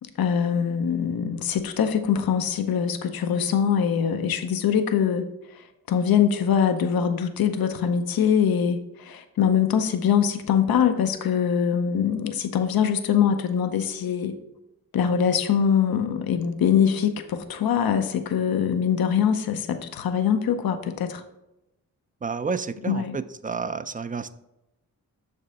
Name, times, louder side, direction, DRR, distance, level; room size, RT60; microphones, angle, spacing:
voice 1, 0.2-5.3 5.5-14.4 14.9-21.2 22.9-23.2, left 8 dB, 75° left, 7 dB, 0.7 m, -23 dB
voice 2, 22.2-24.3, right 5 dB, 25° right, 14 dB, 0.4 m, -30 dB
6.5 x 5.3 x 4.1 m, 0.94 s
cardioid pair, 50°, 36 cm